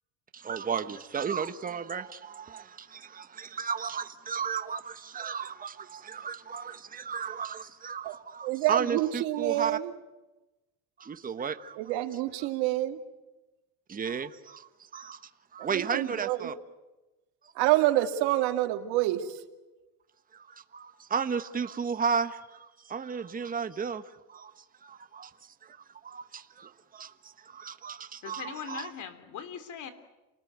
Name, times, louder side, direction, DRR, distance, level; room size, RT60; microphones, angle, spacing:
voice 1, 0.3-9.8 11.0-11.8 13.9-15.2 15.5-16.5 20.3-24.0 24.3-25.3 25.6-28.9, right 6 dB, 20° right, 1.2 m, -34 dB
voice 2, 8.4-9.9 11.8-13.0 15.7-16.5 17.5-19.4, right 15 dB, 80° right, 2.5 m, -27 dB
voice 3, 28.2-29.9, left 7 dB, 50° left, 3.2 m, -40 dB
29.0 x 20.0 x 9.4 m
cardioid pair, 130°, 39 cm